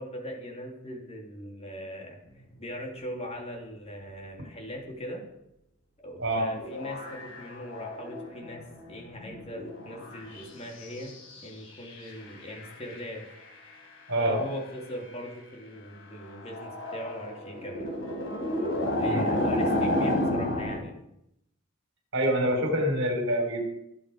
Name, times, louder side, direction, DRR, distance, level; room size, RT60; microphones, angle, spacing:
voice 1, 0.0-2.2 2.6-5.2 6.0-8.6 8.9-11.1 11.4-13.2 14.2-17.9 19.0-21.0, equal, 30° left, 1 dB, 2.9 m, -40 dB
voice 2, 6.2-6.5 14.1-14.4 19.1-19.2 22.1-23.6, right 1 dB, 60° right, 2 dB, 4.5 m, -26 dB
sound 1, 6.5-10.5 10.8-13.7 15.2-15.3 16.3-20.8, left 1 dB, 75° left, 4.7 m, -32 dB
25.0 x 8.5 x 5.0 m, 0.81 s
head